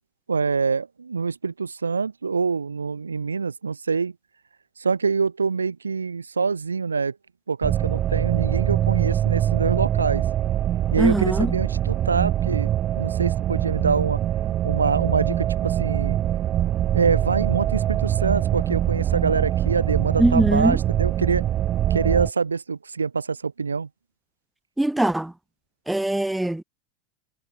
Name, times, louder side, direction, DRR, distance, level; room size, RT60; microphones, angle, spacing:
voice 1, 0.3-4.1 4.8-7.1 7.5-10.2 10.9-12.7 13.0-14.2 14.6-16.2 16.9-21.5 21.9-23.9, right 5 dB, 75° right, 2.5 m, -25 dB
sound 1, 7.6-22.3, right 12 dB, 30° right, 2.2 m, -23 dB
voice 2, 11.0-11.5 20.2-20.8 24.8-25.3 25.9-26.6, right 1 dB, 5° right, 0.7 m, -21 dB
figure-of-eight pair, 85°, 0 cm